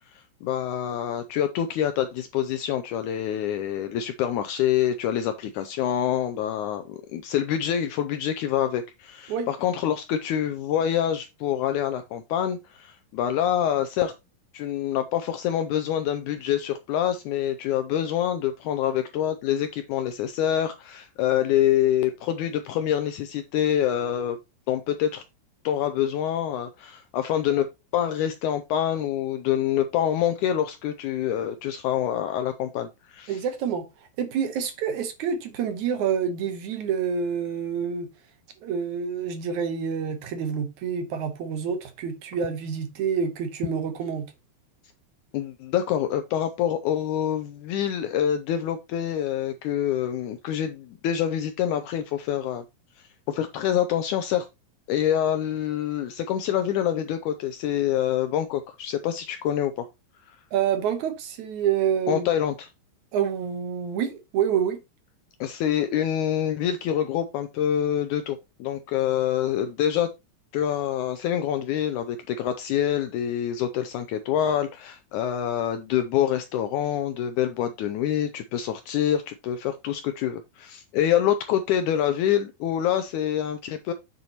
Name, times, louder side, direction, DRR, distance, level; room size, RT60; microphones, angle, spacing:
voice 1, 0.1-14.1 14.5-24.4 24.7-25.2 25.6-27.7 27.9-33.4 45.3-52.6 53.3-54.4 54.9-59.9 60.3-60.4 62.1-62.7 65.4-70.1 70.5-83.9, left 10 dB, 80° left, 1.8 m, -26 dB
voice 2, 33.3-38.1 38.6-44.3 60.5-62.3 63.1-64.8, right 7 dB, 70° right, 2.1 m, -27 dB
7.9 x 6.8 x 2.9 m
omnidirectional pair, 4.0 m